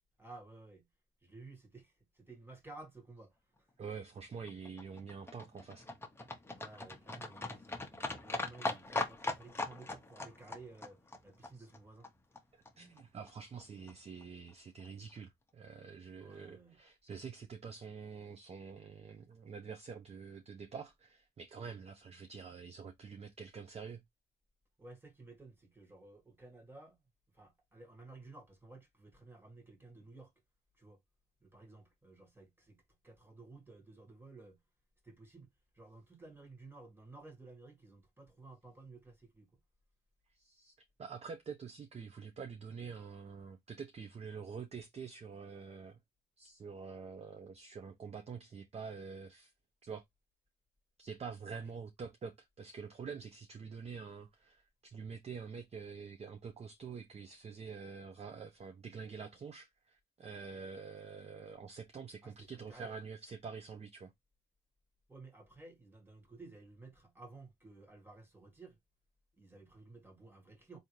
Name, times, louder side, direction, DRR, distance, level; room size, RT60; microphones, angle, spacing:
voice 1, 0.2-0.8 1.2-3.3 3.6-3.7 6.5-12.1 16.2-16.8 24.8-27.0 27.3-30.3 30.8-31.0 31.4-34.6 35.0-35.5 35.7-39.5 51.5-51.7 62.2-62.9 65.1-68.8 69.4-70.8, right 3 dB, 10° right, 1.4 m, -55 dB
voice 2, 3.8-5.9 11.5-11.7 12.5-24.0 40.3-40.7 41.0-46.0 46.4-49.5 49.8-50.0 51.0-64.1, right 5 dB, 30° right, 0.5 m, -47 dB
Livestock farm animals working animals, 4.2-12.4 12.6-12.7 13.0-13.1 13.3-13.4 13.6-13.7 13.9-14.0 14.2-14.3 14.5-14.6 14.8-14.9, left 2 dB, 10° left, 0.8 m, -41 dB
3.6 x 2.6 x 3.0 m
cardioid pair, 90°, 20 cm